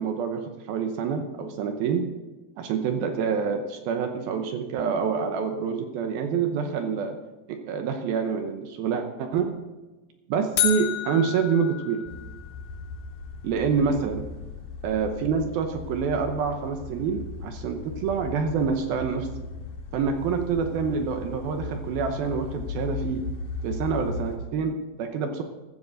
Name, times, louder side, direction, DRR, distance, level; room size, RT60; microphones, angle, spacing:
voice 1, 0.0-2.1 2.6-7.2 7.5-9.6 10.3-12.0 13.4-14.3 14.8-19.3 19.9-23.2 23.6-25.4, right 6 dB, 75° right, 6 dB, 2.4 m, -27 dB
sound 1, 10.6-12.7, left 12 dB, 90° left, 1.7 m, -30 dB
sound 2, 12.1-24.4, left 4 dB, 65° left, 2.8 m, -37 dB
15.5 x 13.0 x 3.9 m, 1.2 s
omnidirectional pair, 5.0 m